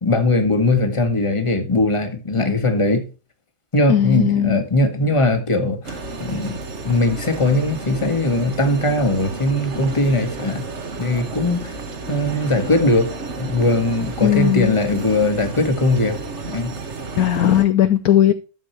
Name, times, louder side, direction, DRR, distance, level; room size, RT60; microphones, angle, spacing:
voice 1, 0.0-3.1 3.7-6.6 6.8-10.7 11.0-11.7 12.1-13.1 13.4-16.2 16.5-16.8, left 2 dB, 15° left, 1.5 m, -20 dB
voice 2, 3.9-4.6 14.2-14.7 17.2-18.3, left 11 dB, 65° left, 1.0 m, -17 dB
sound 1, 5.8-17.6, right 3 dB, 40° right, 1.6 m, -32 dB
12.5 x 7.5 x 3.2 m
omnidirectional pair, 2.1 m